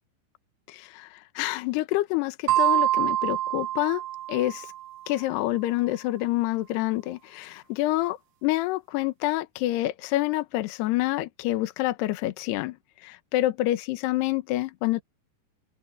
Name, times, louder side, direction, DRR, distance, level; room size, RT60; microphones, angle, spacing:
voice 1, 0.7-4.0 4.3-4.7 5.1-12.8 13.0-15.0, left 17 dB, 75° left, 2.9 m, -27 dB
sound 1, 2.5-5.0, right 13 dB, 85° right, 2.0 m, -26 dB
open air
omnidirectional pair, 5.1 m